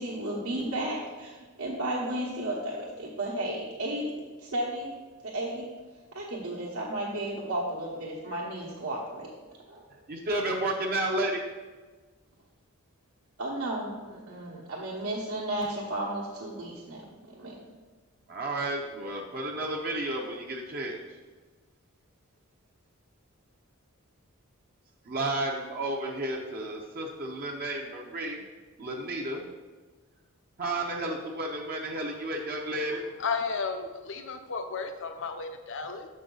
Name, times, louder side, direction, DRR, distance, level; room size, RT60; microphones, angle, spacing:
voice 1, 0.0-4.1 4.4-4.9 5.2-5.7 6.1-9.3 9.7-9.8 13.4-17.6, right 1 dB, 75° right, -5 dB, 1.1 m, -33 dB
voice 2, 10.1-11.4 18.3-21.2 25.0-28.5 28.8-29.5 30.6-33.0, right 1 dB, 45° right, 0 dB, 0.6 m, -32 dB
voice 3, 33.2-36.1, left 5 dB, 60° left, 7 dB, 0.6 m, -33 dB
6.9 x 5.3 x 3.8 m, 1.3 s
head